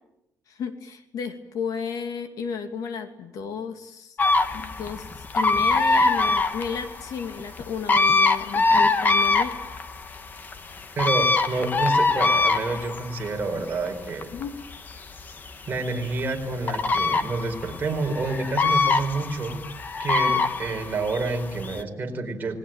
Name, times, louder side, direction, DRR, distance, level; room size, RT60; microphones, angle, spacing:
voice 1, 0.5-4.2 4.5-9.6 14.3-14.5, left 6 dB, 60° left, 7 dB, 2.6 m, -33 dB
sound 1, 4.2-21.8, left 3 dB, 30° left, 1.3 m, -24 dB
voice 2, 11.0-14.3 15.7-19.6 20.0-22.6, right 3 dB, 25° right, 3 dB, 4.6 m, -28 dB
29.0 x 20.5 x 9.0 m, 0.87 s
cardioid pair, 170°, 7 cm